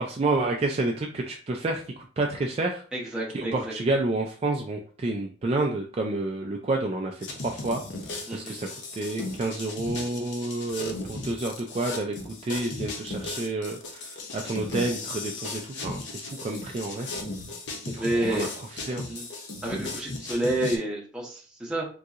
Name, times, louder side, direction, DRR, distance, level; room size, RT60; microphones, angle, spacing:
voice 1, 0.0-2.8 3.3-7.8 8.3-8.7 9.0-17.1 17.9-18.5 18.9-19.0, right 2 dB, 35° right, 2 dB, 0.3 m, -29 dB
voice 2, 2.9-3.7 8.3-8.6 18.0-18.5 18.9-19.3 19.6-21.8, right 1 dB, 5° right, -3 dB, 0.8 m, -29 dB
sound 1, 7.2-20.8, left 2 dB, 75° left, 0.7 m, -36 dB
3.8 x 2.7 x 2.4 m, 0.41 s
head